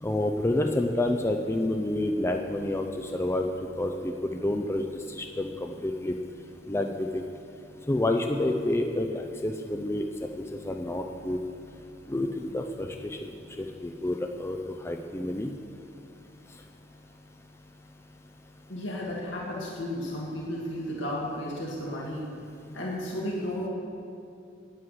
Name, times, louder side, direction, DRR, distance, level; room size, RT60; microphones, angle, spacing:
voice 1, 0.0-2.9 3.1-3.5 3.8-4.8 5.1-6.1 6.7-7.2 7.9-10.0 10.6-11.4 12.1-12.9 13.2-13.3 13.6-14.6 14.8-15.5, left 1 dB, 15° left, 4 dB, 0.5 m, -28 dB
voice 2, 18.7-22.3 22.7-23.7, left 1 dB, 70° left, -4 dB, 2.0 m, -33 dB
9.9 x 9.7 x 7.8 m, 2.6 s
head